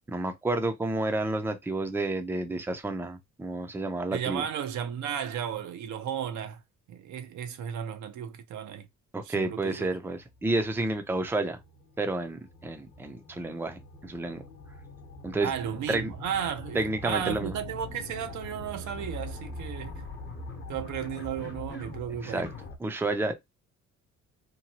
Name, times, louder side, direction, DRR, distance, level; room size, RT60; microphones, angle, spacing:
voice 1, 0.1-4.5 9.1-11.6 12.0-14.4 15.2-15.5 15.9-16.1 16.7-17.5 22.2-22.5 22.8-23.3, right 2 dB, 5° right, 0.5 m, -30 dB
voice 2, 4.1-6.6 6.9-8.9 9.2-9.9 15.4-19.9 20.7-22.5, right 9 dB, 75° right, 0.6 m, -34 dB
sound 1, 10.3-22.8, left 2 dB, 40° left, 0.9 m, -43 dB
2.8 x 2.2 x 2.9 m
cardioid pair, 90°, 30 cm